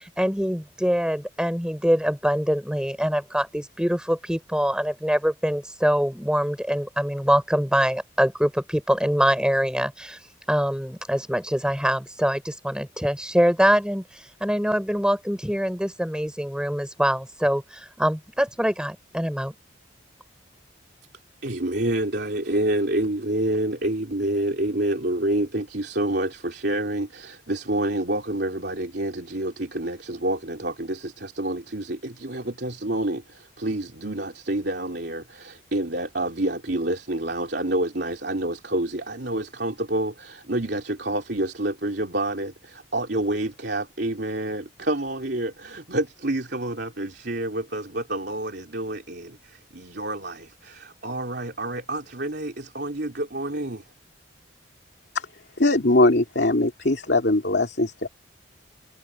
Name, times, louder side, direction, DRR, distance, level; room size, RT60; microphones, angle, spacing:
voice 1, 0.0-19.5, equal, 5° right, 6.1 m, -24 dB
voice 2, 21.4-53.8, right 1 dB, 55° right, 3.2 m, -28 dB
voice 3, 55.6-58.1, left 2 dB, 60° left, 2.6 m, -21 dB
head